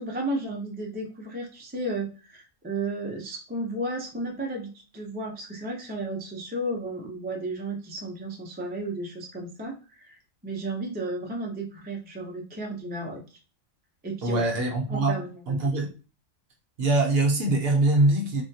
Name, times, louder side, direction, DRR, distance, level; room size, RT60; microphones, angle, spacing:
voice 1, 0.0-10.2 10.4-13.2 14.0-14.4 14.9-15.6, right 2 dB, 15° right, 0 dB, 0.4 m, -33 dB
voice 2, 14.2-15.2 15.5-15.9 16.8-18.4, right 2 dB, 55° right, 1 dB, 0.9 m, -23 dB
3.5 x 2.2 x 2.7 m, 0.34 s
omnidirectional pair, 1.3 m